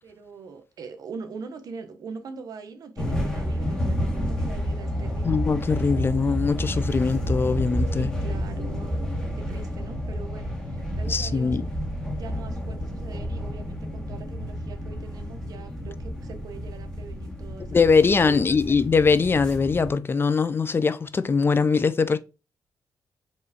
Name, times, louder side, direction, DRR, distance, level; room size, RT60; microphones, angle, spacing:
voice 1, 0.0-5.4 7.9-11.6 12.1-18.6, right 5 dB, 65° right, 0.8 m, -42 dB
sound 1, 3.0-19.9, equal, 10° left, 1.7 m, -30 dB
voice 2, 5.2-8.1 11.1-11.7 17.7-22.2, left 5 dB, 35° left, 0.4 m, -22 dB
4.6 x 3.1 x 2.7 m
cardioid pair, 80°, 7 cm